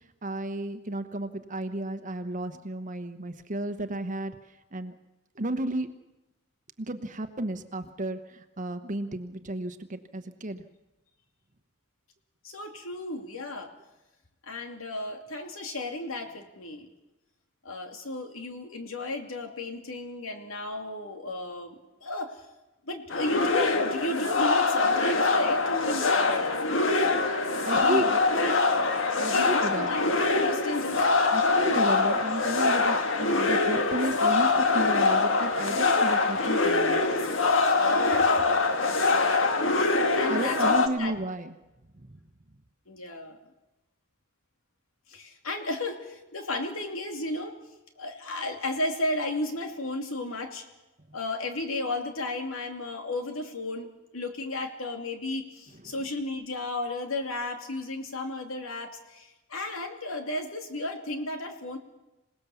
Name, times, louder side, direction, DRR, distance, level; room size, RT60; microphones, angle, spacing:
voice 1, 0.2-4.4 4.7-4.9 5.4-5.9 6.8-10.6 27.6-28.2 29.2-29.9 31.3-37.0 40.3-41.5 42.0-42.1, right 1 dB, 40° right, 9 dB, 1.1 m, -33 dB
voice 2, 12.4-13.7 14.4-16.9 17.6-22.4 22.9-26.7 27.7-28.6 29.3-30.1 30.4-31.2 37.8-38.4 39.1-39.6 40.1-41.1 42.9-43.4 45.1-47.6 48.0-50.6 51.1-61.8, left 2 dB, 85° left, 5 dB, 2.8 m, -34 dB
sound 1, 23.1-40.9, left 3 dB, 65° left, 1.7 m, -24 dB
27.0 x 18.0 x 7.1 m, 1.0 s
head